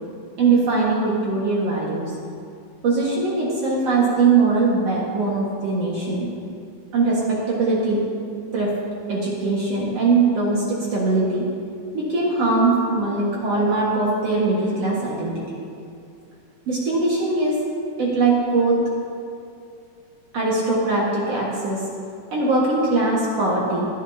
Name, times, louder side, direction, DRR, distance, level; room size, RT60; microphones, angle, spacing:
voice 1, 0.4-2.1 2.8-6.3 6.9-8.0 8.5-8.7 9.1-11.5 11.9-15.4 16.7-17.6 18.0-18.8 20.3-21.8 22.3-23.9, right 3 dB, 55° right, -5 dB, 2.5 m, -21 dB
18.5 x 12.0 x 2.8 m, 2.5 s
omnidirectional pair, 3.6 m